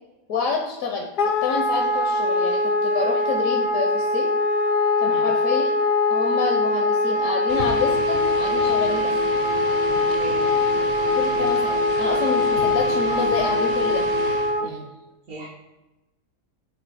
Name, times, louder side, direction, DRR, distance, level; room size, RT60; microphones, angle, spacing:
voice 1, 0.3-1.1 1.4-4.3 5.0-5.7 6.1-9.2 11.1-14.0 14.6-14.8, left 5 dB, 70° left, 0 dB, 1.2 m, -28 dB
Wind instrument woodwind instrument, 1.2-14.7, left 2 dB, 85° left, 0.4 m, -22 dB
sound 1, 7.5-14.6, right 3 dB, 45° right, 0.7 m, -32 dB
voice 2, 9.9-10.5 14.6-14.8 15.3-15.5, left 1 dB, 75° right, -9 dB, 2.2 m, -37 dB
8.2 x 2.8 x 4.9 m, 1.0 s
omnidirectional pair, 1.5 m